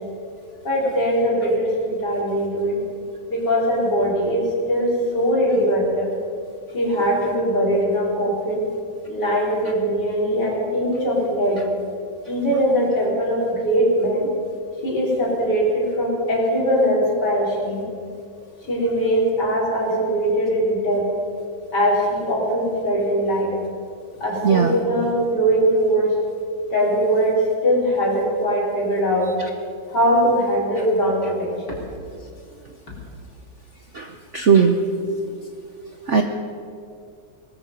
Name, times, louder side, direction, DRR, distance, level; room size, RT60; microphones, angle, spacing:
voice 1, 0.6-2.8 3.3-6.1 6.7-8.6 9.1-11.6 12.3-14.3 14.8-17.9 18.7-21.1 21.7-23.5 24.2-26.1 26.7-29.3 29.9-31.8, equal, 55° left, -4 dB, 4.8 m, -21 dB
voice 2, 24.4-24.7 33.9-34.8 36.1-36.2, right 6 dB, 55° right, 5 dB, 0.8 m, -17 dB
20.0 x 13.0 x 5.4 m, 2.4 s
omnidirectional pair, 2.1 m